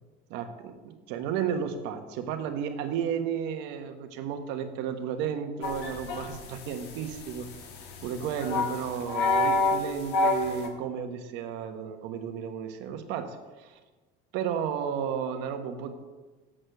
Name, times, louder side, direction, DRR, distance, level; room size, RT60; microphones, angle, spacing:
voice 1, 0.3-7.5 8.0-13.8 14.3-15.9, right 8 dB, 70° right, 7 dB, 1.1 m, -33 dB
sound 1, 5.6-10.7, left 2 dB, 65° left, 1.5 m, -29 dB
7.6 x 6.6 x 6.6 m, 1.2 s
cardioid pair, 165°, 18 cm